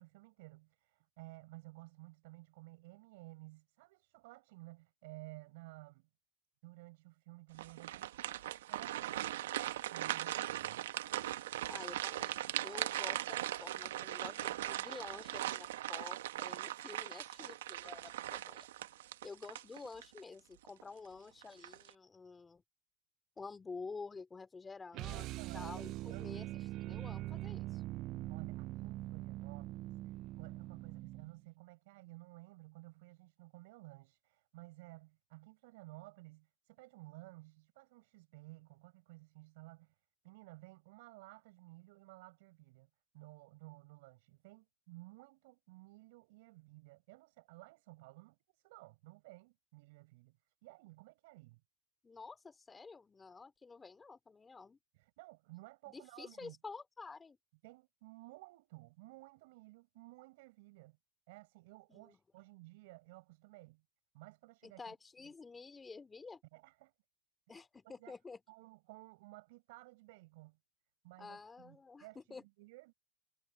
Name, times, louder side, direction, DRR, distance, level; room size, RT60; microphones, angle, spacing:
voice 1, 0.0-6.1 6.6-10.8 25.1-25.8 26.1-26.6 28.0-40.0 40.2-42.9 43.1-50.4 50.6-51.6 54.9-56.6 57.6-61.0 61.3-63.8 64.1-64.9 66.5-66.9 67.5-68.1 68.5-70.6 71.0-72.9, right 22 dB, 70° right, 7.6 m, -55 dB
sound 1, 7.5-20.2 20.7-20.8 21.4-21.9, right 13 dB, 85° right, 1.1 m, -39 dB
voice 2, 11.7-18.7 19.2-22.6 23.4-25.3 25.5-26.5 26.7-27.8 52.0-54.8 55.9-57.4 61.9-62.2 64.6-66.4 67.5-68.4 71.2-72.4, left 4 dB, 15° left, 2.9 m, -50 dB
sound 2, 24.9-31.4, right 17 dB, 50° right, 0.3 m, -43 dB
supercardioid pair, 120°, 0 cm